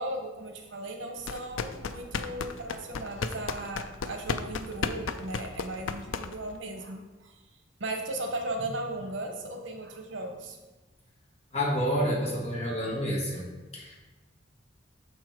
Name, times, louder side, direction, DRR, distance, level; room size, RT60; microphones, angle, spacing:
voice 1, 0.0-7.4 7.8-10.6, right 2 dB, 70° right, 4 dB, 1.0 m, -36 dB
sound 1, 1.2-6.6, left 5 dB, 85° left, 0.4 m, -34 dB
voice 2, 11.5-13.5 13.7-14.0, equal, 35° left, -3 dB, 1.5 m, -29 dB
6.5 x 4.6 x 4.6 m, 1.1 s
head